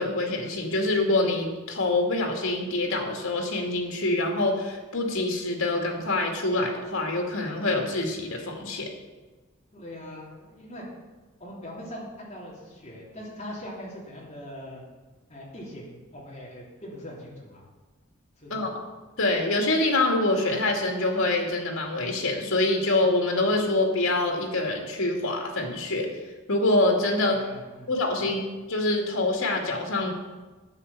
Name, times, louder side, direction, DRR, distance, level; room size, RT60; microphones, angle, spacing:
voice 1, 0.0-8.9 18.5-18.7 19.2-26.1 26.5-27.4 27.9-28.4 28.7-30.1, left 2 dB, 85° left, 2 dB, 2.4 m, -25 dB
voice 2, 9.7-10.8 11.4-14.8 15.3-17.6 18.4-18.7 27.3-27.9 28.2-28.3, equal, 30° left, -4 dB, 3.1 m, -41 dB
9.7 x 8.6 x 6.9 m, 1.3 s
head